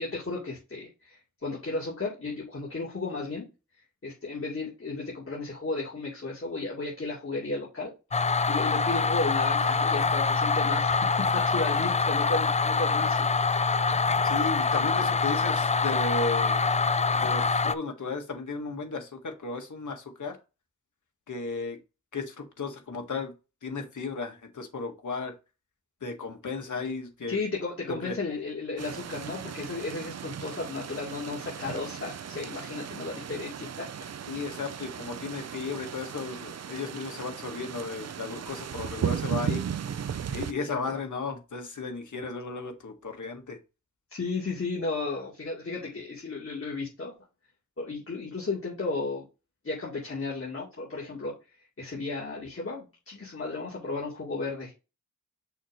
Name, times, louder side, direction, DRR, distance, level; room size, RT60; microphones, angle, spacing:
voice 1, 0.0-3.4 4.0-7.9 8.5-13.3 27.3-33.9 40.6-40.7 44.1-47.1 47.8-49.2 49.6-51.3 51.8-54.7, left 3 dB, 45° left, -4 dB, 2.4 m, -34 dB
sound 1, 8.1-17.7, left 4 dB, 25° left, 0.4 m, -25 dB
voice 2, 14.2-16.6 17.1-20.4 21.3-21.8 22.1-23.3 23.6-25.3 26.0-27.4 27.9-28.2 34.3-39.6 40.3-43.6, left 3 dB, 70° left, 4 dB, 1.7 m, -35 dB
sound 2, 28.8-40.5, right 8 dB, 55° right, 0.5 m, -36 dB
6.3 x 2.9 x 5.1 m, 0.28 s
wide cardioid pair, 85°, 31 cm